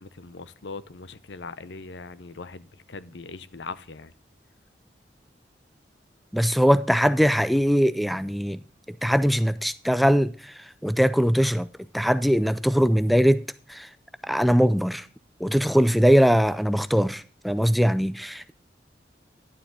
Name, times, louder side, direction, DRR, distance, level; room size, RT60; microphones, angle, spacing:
voice 1, 0.0-4.1, left 4 dB, 80° left, 0.7 m, -40 dB
voice 2, 6.3-8.6 9.0-11.7 11.9-13.4 13.7-13.9 14.3-15.1 15.4-18.5, equal, ahead, 0.3 m, -21 dB
11.0 x 7.4 x 3.7 m
head